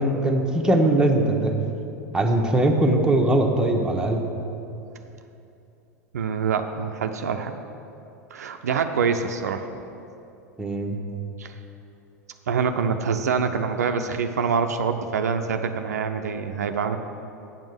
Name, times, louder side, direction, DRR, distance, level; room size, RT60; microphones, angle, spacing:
voice 1, 0.0-1.5 2.1-4.2 10.6-11.0, right 1 dB, 10° right, 0 dB, 1.1 m, -21 dB
voice 2, 6.1-7.6 8.3-9.7 11.4-11.5 12.5-17.0, right 6 dB, 80° right, 6 dB, 0.5 m, -25 dB
8.9 x 5.3 x 7.7 m, 2.7 s
hypercardioid pair, 90°, 9 cm